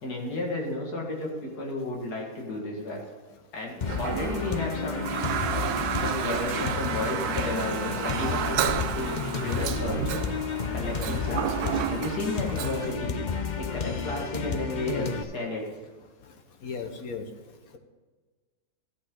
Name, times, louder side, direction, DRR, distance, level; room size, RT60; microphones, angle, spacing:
voice 1, 0.0-3.0 3.5-5.1 5.9-10.3 10.7-13.1 13.6-15.1 15.3-15.6, left 2 dB, 85° left, -1 dB, 2.5 m, -33 dB
sound 1, 3.8-15.2, left 6 dB, 45° left, 0.6 m, -32 dB
Toilet flush, 3.8-13.0, right 9 dB, 85° right, 1.2 m, -32 dB
Bowed string instrument, 6.2-9.8 10.2-10.6, right 7 dB, 65° right, 0.9 m, -40 dB
voice 2, 14.8-15.1 16.6-17.2, left 5 dB, 65° left, 6 dB, 1.5 m, -34 dB
14.0 x 8.4 x 3.8 m, 1.4 s
omnidirectional pair, 1.6 m